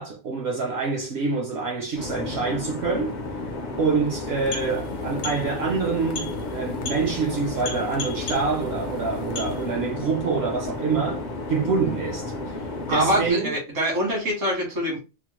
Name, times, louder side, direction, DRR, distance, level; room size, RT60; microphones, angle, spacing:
voice 1, 0.0-3.1 3.8-13.6, right 4 dB, 65° right, 0.8 m, -26 dB
sound 1, 2.0-13.3, left 2 dB, 45° left, 0.6 m, -33 dB
sound 2, 4.2-10.0, left 4 dB, 80° left, 0.9 m, -37 dB
voice 2, 12.9-15.0, equal, 80° right, 1.8 m, -24 dB
3.6 x 2.0 x 2.9 m
omnidirectional pair, 1.3 m